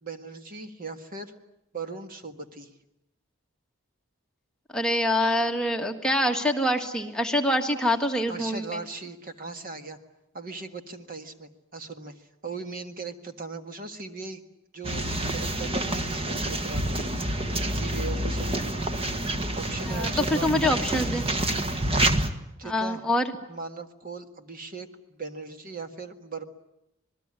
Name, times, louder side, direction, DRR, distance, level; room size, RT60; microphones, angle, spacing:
voice 1, 0.0-1.3 1.7-2.7 8.3-10.0 10.3-14.4 14.7-15.0 15.3-17.0 17.7-18.7 19.5-20.8 22.6-23.0 23.5-26.4, right 4 dB, 45° right, 6 dB, 1.7 m, -38 dB
voice 2, 4.7-8.8 19.9-21.2 22.6-23.3, left 1 dB, 5° left, 2 dB, 1.8 m, -25 dB
sound 1, 14.8-22.3, right 1 dB, 30° right, 1.5 m, -28 dB
26.5 x 20.5 x 9.8 m, 0.85 s
head